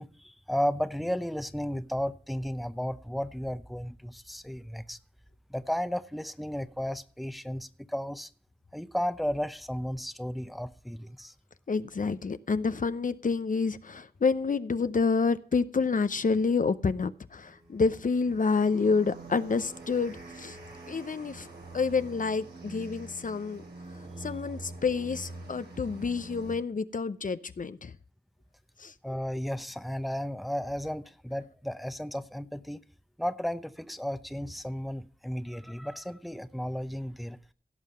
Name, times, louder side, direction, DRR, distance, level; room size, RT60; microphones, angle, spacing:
voice 1, 0.0-5.0 5.5-8.3 8.7-11.3 29.0-32.8 33.2-37.4, equal, ahead, 0.8 m, -34 dB
voice 2, 11.7-20.6 20.9-21.5 21.7-23.6 24.2-27.9 28.8-28.9, left 4 dB, 55° left, 0.6 m, -28 dB
sound 1, 17.5-26.6, right 2 dB, 85° right, 3.8 m, -45 dB
16.5 x 5.6 x 5.5 m
cardioid pair, 45°, 16 cm